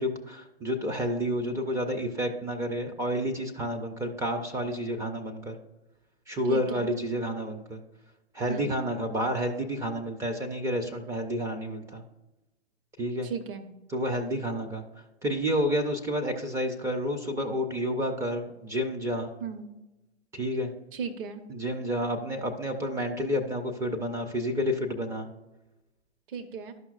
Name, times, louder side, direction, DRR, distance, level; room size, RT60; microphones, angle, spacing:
voice 1, 0.0-5.6 6.3-7.8 8.3-12.0 13.0-13.3 13.9-14.8 15.2-19.3 20.3-20.7 21.5-25.3, equal, 10° right, 3 dB, 0.4 m, -30 dB
voice 2, 6.5-6.9 8.5-8.7 13.2-13.7 19.4-19.7 20.9-21.4 26.3-26.7, right 6 dB, 55° right, 8 dB, 1.0 m, -36 dB
12.0 x 5.6 x 2.4 m, 1.0 s
figure-of-eight pair, 110°, 32 cm